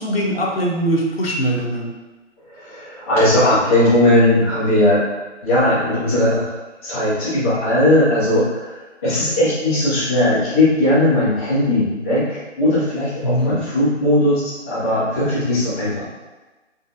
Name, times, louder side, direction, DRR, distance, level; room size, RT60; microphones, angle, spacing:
voice 1, 0.0-1.9 13.2-13.6, right 1 dB, 55° left, -2 dB, 0.9 m, -21 dB
voice 2, 2.5-5.0 5.4-6.5 6.8-16.1, left 1 dB, 10° left, -13 dB, 0.7 m, -18 dB
4.1 x 3.3 x 2.6 m, 1.2 s
figure-of-eight pair, 150°, 36 cm